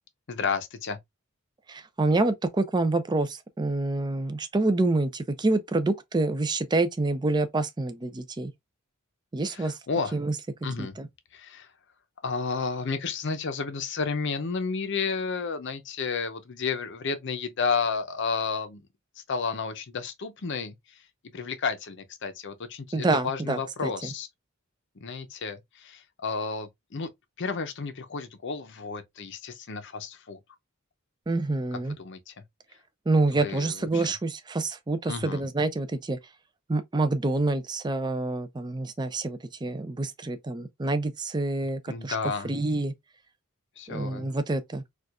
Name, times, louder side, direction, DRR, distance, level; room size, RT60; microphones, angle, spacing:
voice 1, 0.3-1.0 9.5-10.2 10.6-10.9 11.3-11.7 12.2-18.8 19.3-20.7 21.3-24.3 25.0-27.1 27.4-30.4 31.7-32.3 33.3-34.1 35.1-35.4 41.9-42.6 43.8-44.3, left 5 dB, 55° left, 0.6 m, -32 dB
voice 2, 1.7-8.5 9.3-9.7 10.1-10.3 10.8-11.1 22.9-23.9 31.3-31.9 33.1-36.2 36.7-42.2 42.4-42.9 43.9-44.8, right 2 dB, 20° right, 0.4 m, -27 dB
4.4 x 2.4 x 2.4 m
head